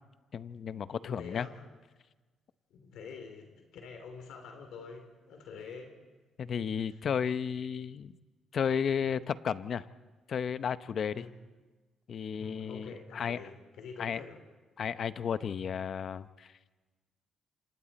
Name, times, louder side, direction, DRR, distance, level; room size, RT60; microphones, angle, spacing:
voice 1, 0.3-1.5 6.4-8.1 8.5-9.9 10.3-11.2 12.1-13.4 14.0-14.2 14.8-16.5, left 7 dB, 55° left, 14 dB, 0.8 m, -33 dB
voice 2, 1.0-1.6 2.7-5.9 6.9-7.0 11.1-11.3 12.4-14.4, left 5 dB, 85° left, 4 dB, 3.2 m, -46 dB
28.0 x 26.5 x 4.3 m, 1.2 s
cardioid pair, 90°, 0 cm